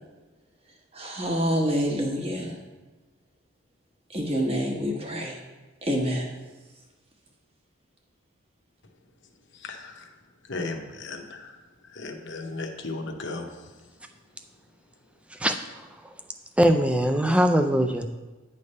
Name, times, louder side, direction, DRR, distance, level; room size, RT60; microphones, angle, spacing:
voice 1, 0.9-2.5 4.1-5.4 5.8-6.3, equal, 30° right, 0 dB, 1.0 m, -27 dB
voice 2, 9.6-10.0 10.5-11.5 11.9-13.5, left 3 dB, 55° left, 4 dB, 0.8 m, -35 dB
voice 3, 16.6-18.1, right 1 dB, 5° right, 6 dB, 0.3 m, -21 dB
9.5 x 3.3 x 5.3 m, 1.2 s
head